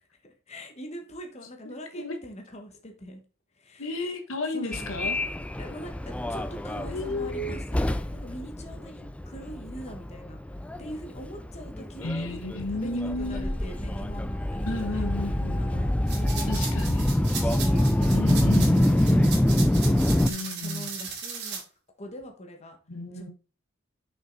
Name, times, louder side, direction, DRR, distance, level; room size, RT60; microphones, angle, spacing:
voice 1, 0.2-3.2 3.5-4.1 4.5-5.0 5.6-5.9 6.3-12.4 12.7-16.8 17.2-20.2 20.6-21.6 22.0-22.8 23.1-23.3, equal, 30° left, 1.3 m, -42 dB
voice 2, 1.6-2.2 3.8-5.2 6.9-7.6 12.0-13.5 14.7-15.9 16.5-17.2 18.1-18.8 20.3-20.9 22.9-23.3, left 2 dB, 70° left, 1.2 m, -33 dB
Subway metro underground, 4.7-20.3, left 1 dB, 5° left, 0.3 m, -26 dB
sound 1, 16.1-21.6, right 6 dB, 55° right, 2.5 m, -37 dB
6.3 x 5.6 x 4.0 m
head